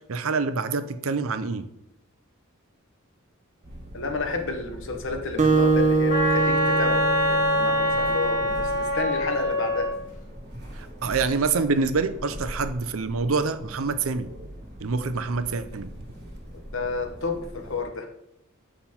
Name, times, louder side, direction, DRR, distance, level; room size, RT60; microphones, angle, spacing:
voice 1, 0.1-1.7 10.8-14.3 14.8-15.9, right 4 dB, 70° right, 11 dB, 0.6 m, -26 dB
sound 1, 3.6-17.8, equal, 50° right, 2.8 m, -41 dB
voice 2, 3.9-9.9 16.7-18.1, left 4 dB, 60° left, 5 dB, 1.1 m, -31 dB
Acoustic guitar, 5.4-8.2, right 3 dB, 35° right, 0.8 m, -23 dB
Wind instrument woodwind instrument, 6.1-10.0, equal, 35° left, 1.6 m, -24 dB
7.5 x 5.6 x 4.3 m, 0.80 s
head